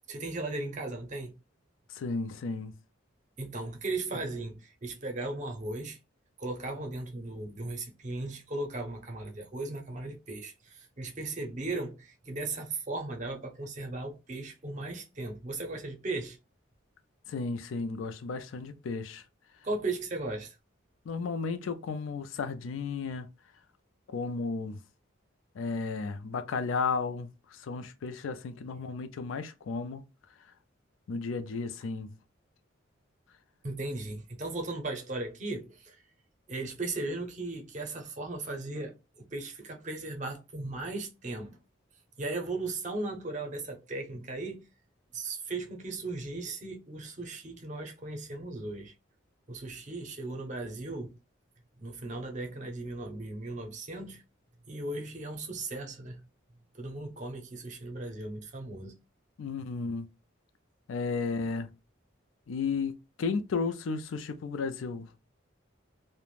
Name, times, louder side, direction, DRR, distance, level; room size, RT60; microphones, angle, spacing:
voice 1, 0.1-1.3 3.4-6.0 6.4-16.4 19.6-20.5 33.6-36.0 36.5-41.6 42.2-44.7 45.1-48.9 49.5-51.1 51.8-54.2 54.7-56.2 56.7-59.0, right 2 dB, 35° right, 0.6 m, -37 dB
voice 2, 1.9-2.7 17.3-19.2 21.1-23.3 24.1-24.8 25.5-30.0 31.1-32.1 59.4-60.1 60.9-61.7 62.5-62.9 63.2-65.2, left 4 dB, 75° left, 0.4 m, -33 dB
2.4 x 2.1 x 3.1 m
head